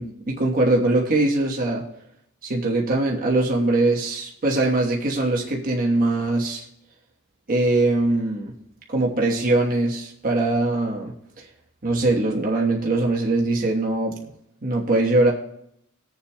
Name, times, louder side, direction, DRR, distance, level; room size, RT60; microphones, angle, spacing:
voice 1, 0.0-1.8 2.4-6.7 7.5-8.5 8.9-11.5 11.8-14.1 14.6-15.3, right 2 dB, 40° right, -2 dB, 1.2 m, -22 dB
21.0 x 7.1 x 2.2 m, 0.77 s
head